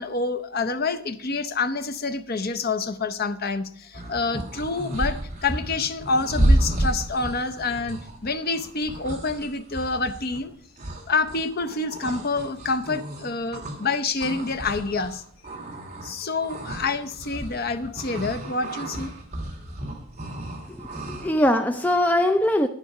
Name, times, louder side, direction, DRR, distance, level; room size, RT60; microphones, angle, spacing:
voice 1, 0.0-10.5 11.0-15.2 16.0-19.1, left 3 dB, 45° left, 0.7 m, -27 dB
sound 1, 3.9-13.9 14.2-21.5, right 1 dB, 30° right, 2.3 m, -30 dB
voice 2, 20.7-22.7, left 1 dB, 5° left, 0.4 m, -22 dB
10.5 x 10.0 x 4.8 m
head